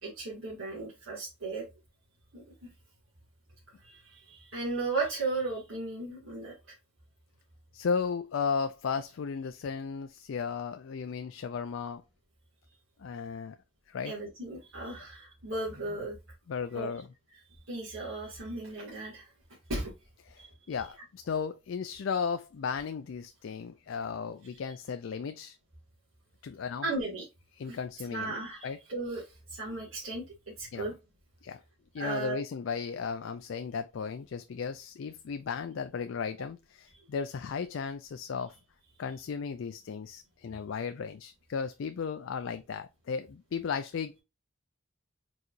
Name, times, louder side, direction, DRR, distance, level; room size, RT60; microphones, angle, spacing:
voice 1, 0.0-1.6 2.3-2.7 3.8-6.5 14.0-16.2 16.7-16.9 17.7-19.3 19.7-19.9 20.4-20.5 26.8-27.3 27.7-27.8 28.1-29.2 29.5-30.2 30.6-30.9 32.0-32.4, right 3 dB, 75° right, 2.1 m, -35 dB
voice 2, 7.7-12.0 13.0-13.6 13.9-14.1 15.0-15.1 16.5-17.1 20.2-25.6 26.4-26.8 27.6-28.4 28.6-28.8 30.7-30.9 31.4-31.6 31.9-38.6 39.0-44.2, left 6 dB, 65° left, 0.3 m, -35 dB
4.7 x 4.0 x 2.5 m
head